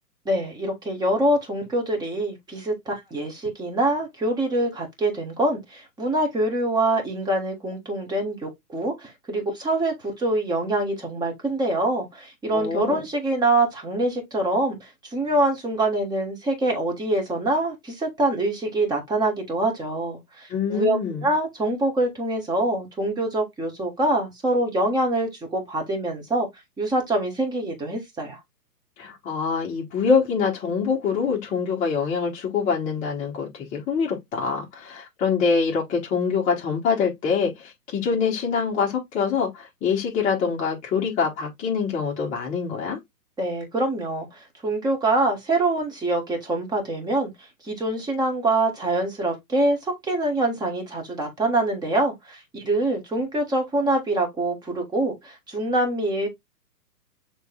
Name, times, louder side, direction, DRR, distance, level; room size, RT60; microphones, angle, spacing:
voice 1, 0.2-26.5 26.8-28.4 43.4-56.3, right 2 dB, 10° right, 1.4 m, -25 dB
voice 2, 12.5-13.0 20.5-21.2 29.0-43.0, left 5 dB, 15° left, 1.3 m, -25 dB
6.6 x 3.3 x 2.4 m
hypercardioid pair, 140°, 49 cm